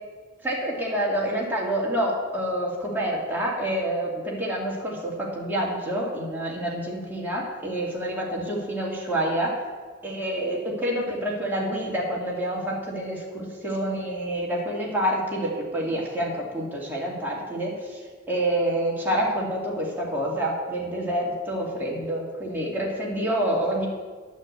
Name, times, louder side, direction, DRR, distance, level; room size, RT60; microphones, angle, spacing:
voice 1, 0.4-9.6 10.0-23.9, right 1 dB, 10° right, -4 dB, 2.4 m, -27 dB
11.0 x 6.3 x 8.1 m, 1.5 s
head